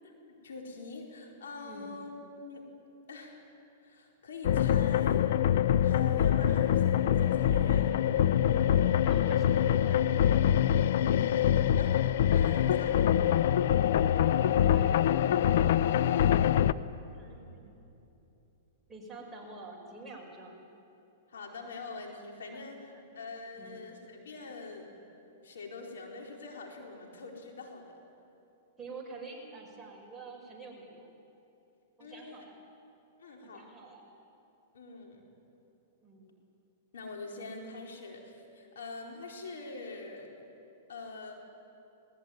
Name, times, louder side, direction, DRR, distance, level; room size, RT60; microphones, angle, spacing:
voice 1, 0.2-2.1 2.4-2.6 3.1-3.4 3.8-7.9 11.5-12.0 12.3-13.4 16.1-16.4 21.3-25.0 25.4-28.0 32.0-32.4 33.2-33.7 34.7-35.2 36.9-40.3 40.9-41.3, left 3 dB, 85° left, 0 dB, 4.4 m, -44 dB
voice 2, 1.6-2.0 9.0-10.0 14.6-15.5 17.1-17.8 18.9-20.7 22.5-22.7 22.9-23.1 23.5-23.9 28.8-31.1 32.0-32.6 33.4-34.1 36.0-36.4, right 3 dB, 5° right, -3 dB, 5.5 m, -48 dB
sound 1, 4.4-16.7, left 10 dB, 65° left, 0.6 m, -25 dB
20.0 x 20.0 x 9.5 m, 2.9 s
hypercardioid pair, 135°, 0 cm